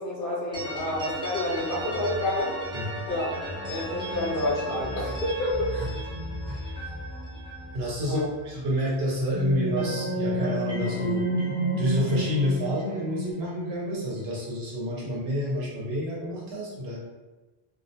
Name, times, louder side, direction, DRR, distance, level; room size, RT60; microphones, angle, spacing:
voice 1, 0.0-2.5 3.1-3.3 3.7-5.5 8.1-8.3, left 1 dB, 60° left, -6 dB, 0.9 m, -29 dB
sound 1, 0.5-9.3 9.5-13.7, equal, 10° right, 0.3 m, -37 dB
voice 2, 6.4-6.8 7.7-8.2 8.4-11.2 11.8-17.0, equal, 70° right, -4 dB, 0.9 m, -29 dB
sound 2, 8.9-13.3, right 1 dB, 40° right, 1.0 m, -30 dB
2.3 x 2.0 x 2.6 m, 1.1 s
omnidirectional pair, 1.1 m